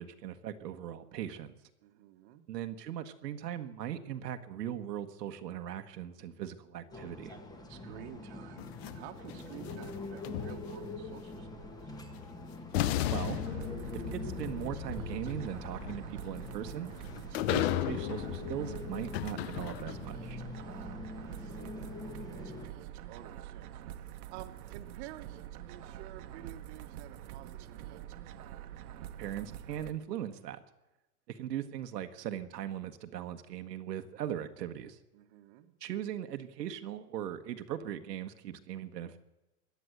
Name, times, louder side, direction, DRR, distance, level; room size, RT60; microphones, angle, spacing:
voice 1, 0.0-1.5 2.5-7.3 13.1-13.4 13.9-16.9 17.5-20.4 29.2-30.6 31.3-35.0 35.8-39.2, right 10 dB, 85° right, 7 dB, 1.5 m, -39 dB
voice 2, 1.8-2.5 7.7-11.9 20.5-28.0 35.1-35.7, right 12 dB, 45° right, 7 dB, 1.4 m, -51 dB
sound 1, 6.9-22.7, left 2 dB, 10° left, 1.2 m, -44 dB
sound 2, 8.6-11.0 12.2-12.3 12.7-20.2, left 13 dB, 40° left, 0.6 m, -36 dB
sound 3, 13.2-29.9, right 11 dB, 65° right, 1.3 m, -46 dB
16.5 x 10.5 x 7.9 m, 1.0 s
supercardioid pair, 150°, 48 cm